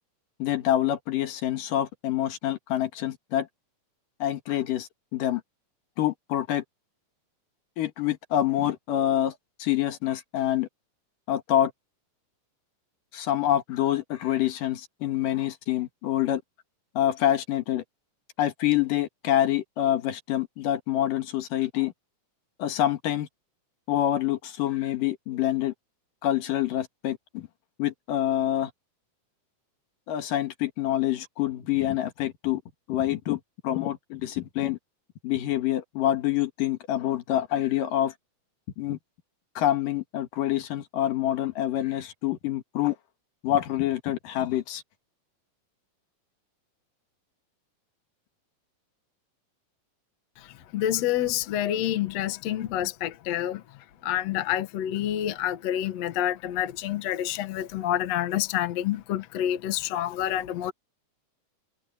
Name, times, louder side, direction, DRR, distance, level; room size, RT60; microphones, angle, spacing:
voice 1, 0.4-3.5 4.2-5.4 6.0-6.6 7.8-9.3 9.6-10.7 11.3-11.7 13.1-16.4 17.0-17.8 18.4-21.9 22.6-23.3 23.9-25.7 26.2-27.4 27.8-28.7 30.1-32.6 32.9-34.8 35.2-38.1 38.8-39.0 39.6-42.9 43.4-44.8, left 12 dB, 80° left, 3.3 m, -26 dB
voice 2, 50.4-60.7, left 12 dB, 60° left, 2.2 m, -28 dB
omnidirectional pair, 3.8 m